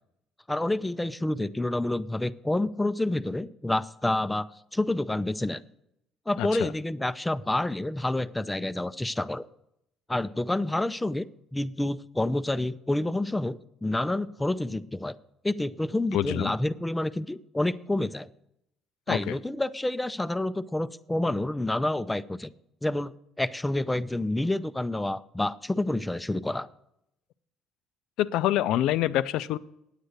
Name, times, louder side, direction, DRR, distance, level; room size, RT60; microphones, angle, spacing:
voice 1, 0.5-5.6 6.3-9.4 10.1-11.3 11.5-15.2 15.4-18.3 19.1-22.5 22.8-26.7, left 1 dB, 10° left, 14 dB, 0.4 m, -28 dB
voice 2, 6.4-6.7 16.1-16.5 19.1-19.3 28.2-29.6, left 13 dB, 75° left, 15 dB, 0.4 m, -26 dB
9.0 x 8.3 x 6.5 m, 0.79 s
supercardioid pair, 85°, 0 cm